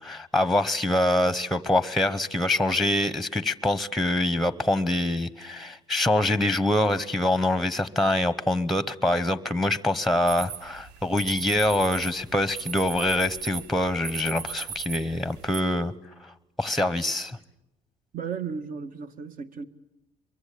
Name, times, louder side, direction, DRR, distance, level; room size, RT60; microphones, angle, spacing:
voice 1, 0.0-15.9 16.2-17.4, left 1 dB, ahead, 1.0 m, -25 dB
sound 1, 10.3-15.6, right 7 dB, 80° right, 1.2 m, -38 dB
voice 2, 18.1-19.7, right 6 dB, 55° right, 1.8 m, -34 dB
24.5 x 23.0 x 8.6 m
cardioid pair, 110°, 17 cm